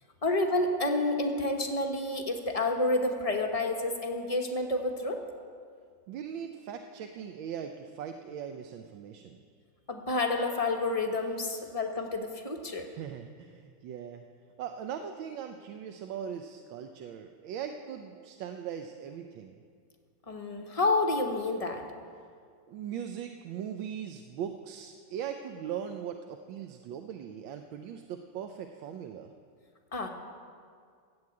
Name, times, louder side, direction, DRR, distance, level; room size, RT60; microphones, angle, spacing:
voice 1, 0.2-5.2 9.9-12.9 20.3-21.8 29.9-30.1, left 2 dB, 30° left, 3 dB, 0.7 m, -29 dB
voice 2, 6.1-9.4 12.8-14.2 14.6-19.6 22.7-29.3, right 8 dB, 75° right, 5 dB, 1.4 m, -40 dB
14.0 x 8.0 x 8.5 m, 2.1 s
omnidirectional pair, 2.2 m